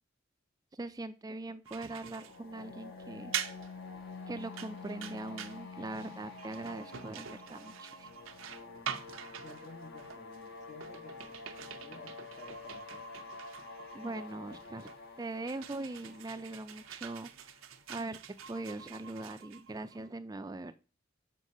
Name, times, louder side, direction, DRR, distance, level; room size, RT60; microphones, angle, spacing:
voice 1, 0.7-3.3 4.3-8.1 13.9-14.9 15.2-17.3 17.9-18.2 18.5-20.7, right 2 dB, 20° right, 0.4 m, -41 dB
sound 1, 1.7-20.1, right 8 dB, 90° right, 0.7 m, -45 dB
sound 2, 2.0-17.9, left 4 dB, 60° left, 1.1 m, -49 dB
voice 2, 9.3-13.1, left 3 dB, 35° left, 0.7 m, -54 dB
6.4 x 5.3 x 5.4 m
head